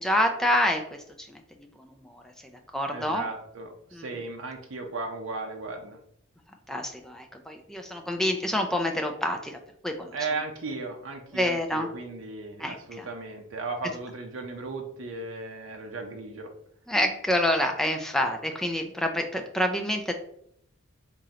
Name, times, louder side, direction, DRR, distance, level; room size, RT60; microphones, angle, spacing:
voice 1, 0.0-3.3 3.9-4.2 6.7-10.4 11.3-11.9 12.6-13.1 16.9-20.1, left 1 dB, ahead, 3 dB, 0.3 m, -28 dB
voice 2, 2.9-6.0 10.1-16.5, right 3 dB, 70° right, 2 dB, 0.6 m, -36 dB
3.7 x 3.0 x 2.8 m, 0.70 s
head